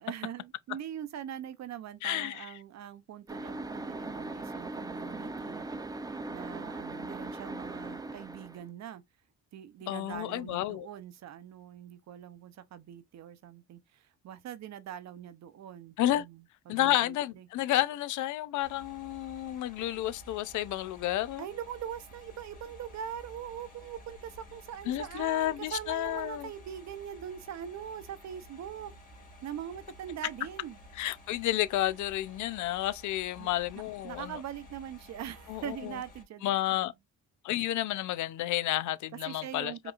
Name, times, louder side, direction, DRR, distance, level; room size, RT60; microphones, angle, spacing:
voice 1, 0.0-5.7 6.3-9.0 9.5-17.5 21.4-28.9 29.4-30.8 33.4-33.5 34.0-36.9 39.3-39.9, right 9 dB, 65° right, 0.7 m, -42 dB
voice 2, 2.0-2.5 9.9-10.9 16.0-16.2 16.7-21.4 24.9-26.5 30.9-34.4 35.5-36.0 36.4-36.9 37.4-39.9, left 14 dB, 75° left, 0.5 m, -31 dB
sound 1, 3.3-8.7, right 2 dB, 15° right, 0.5 m, -39 dB
sound 2, 18.6-36.2, equal, 30° left, 2.3 m, -53 dB
5.0 x 3.0 x 2.4 m
cardioid pair, 90°, 30 cm